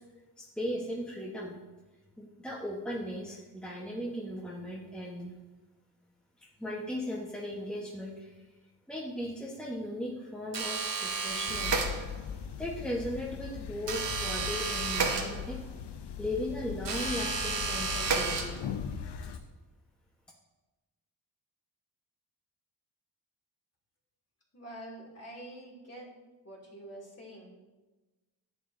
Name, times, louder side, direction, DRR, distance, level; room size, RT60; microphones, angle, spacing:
voice 1, 0.4-1.5 2.2-5.4 6.6-8.3 8.9-12.0 12.6-15.6 16.2-18.6, left 1 dB, ahead, -4 dB, 1.2 m, -37 dB
sound 1, 10.5-12.4 13.9-15.8 16.8-18.9, right 4 dB, 65° right, 1.3 m, -32 dB
sound 2, 11.5-19.4, left 8 dB, 65° left, 0.7 m, -40 dB
voice 2, 24.5-26.1 26.4-27.6, right 1 dB, 35° left, -3 dB, 2.7 m, -46 dB
10.0 x 7.6 x 2.7 m, 1.2 s
cardioid pair, 70°, 45 cm